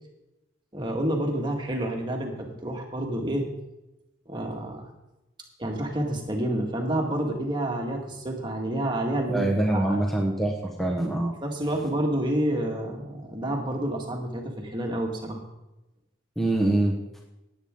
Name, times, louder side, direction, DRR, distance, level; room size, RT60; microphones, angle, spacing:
voice 1, 0.7-3.5 4.3-4.9 5.6-10.0 11.4-15.4, right 1 dB, 20° right, 1 dB, 1.9 m, -29 dB
voice 2, 9.3-11.3 16.4-17.2, right 1 dB, ahead, -1 dB, 1.2 m, -25 dB
18.0 x 8.8 x 3.8 m, 0.95 s
head